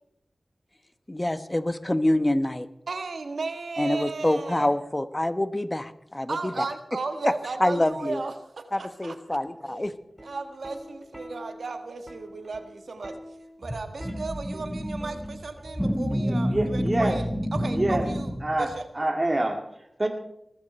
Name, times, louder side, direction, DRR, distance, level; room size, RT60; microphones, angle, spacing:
voice 1, 1.1-2.7 3.8-6.6 7.2-7.3 7.6-8.2 8.7-9.9, left 1 dB, 25° left, 12 dB, 1.1 m, -26 dB
voice 2, 2.9-4.7 6.3-9.2 9.6-9.9 10.2-13.2 13.6-17.2 17.5-18.3 18.6-18.8, right 3 dB, 90° right, 7 dB, 1.5 m, -35 dB
Plucked string instrument, 10.0-17.2 18.3-18.6, equal, 15° right, 4.1 m, -46 dB
sound 1, 13.6-18.8, equal, 10° left, 5.5 m, -29 dB
voice 3, 16.1-17.2 17.7-18.1 18.4-20.1, right 1 dB, 40° right, 4 dB, 2.0 m, -27 dB
20.5 x 13.5 x 4.4 m, 0.80 s
cardioid pair, 45°, 0 cm